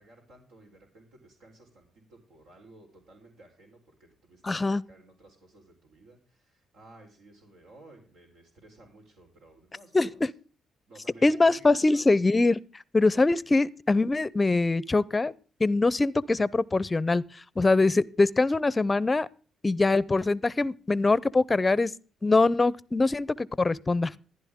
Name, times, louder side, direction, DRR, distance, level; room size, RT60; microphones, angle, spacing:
voice 1, 0.0-10.3 10.9-12.0 13.3-13.5, right 2 dB, 80° right, 4.0 m, -55 dB
voice 2, 4.4-4.8 9.9-10.1 11.2-12.6 12.9-15.3 15.6-17.2 17.6-19.3 19.6-21.9 22.2-24.1, left 3 dB, 20° left, 0.6 m, -23 dB
15.0 x 10.5 x 3.6 m
cardioid pair, 90°, 0 cm